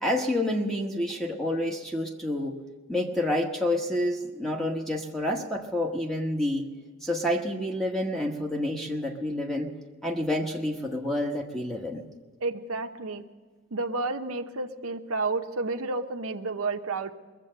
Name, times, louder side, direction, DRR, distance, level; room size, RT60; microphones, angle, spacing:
voice 1, 0.0-2.6 2.9-6.7 7.0-9.7 10.0-12.0, left 1 dB, ahead, 1 dB, 1.1 m, -28 dB
voice 2, 12.4-13.2 13.7-17.1, right 3 dB, 85° right, 6 dB, 0.9 m, -31 dB
21.0 x 7.6 x 7.6 m, 1.4 s
head